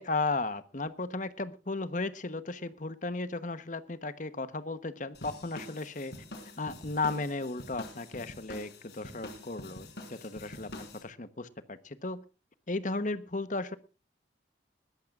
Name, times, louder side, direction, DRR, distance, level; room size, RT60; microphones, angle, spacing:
voice 1, 0.0-6.1 6.6-12.2 12.7-13.8, left 3 dB, 45° left, 13 dB, 1.1 m, -35 dB
sound 1, 5.1-11.0, left 1 dB, 65° left, 4.4 m, -46 dB
21.0 x 14.5 x 2.5 m, 0.32 s
head